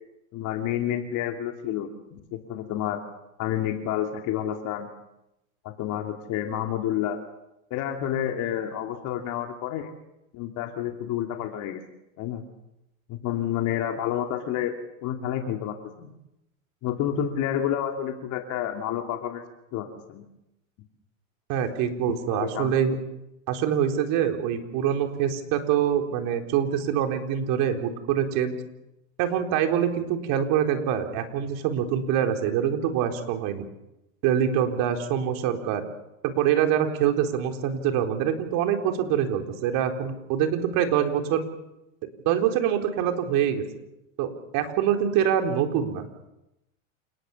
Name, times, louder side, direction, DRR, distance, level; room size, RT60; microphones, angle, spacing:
voice 1, 0.3-3.0 3.4-4.9 5.6-7.2 7.7-9.9 10.3-11.8 12.2-12.4 13.1-14.7 15.0-16.1 16.8-19.4 19.7-20.2 22.1-22.8, left 10 dB, 50° left, 3 dB, 2.9 m, -29 dB
voice 2, 21.5-23.0 23.5-28.6 29.2-33.6 34.2-35.8 36.2-41.4 42.3-43.6 44.2-46.1, right 9 dB, 55° right, 5 dB, 4.1 m, -25 dB
28.5 x 19.5 x 7.2 m, 0.89 s
supercardioid pair, 120°, 40 cm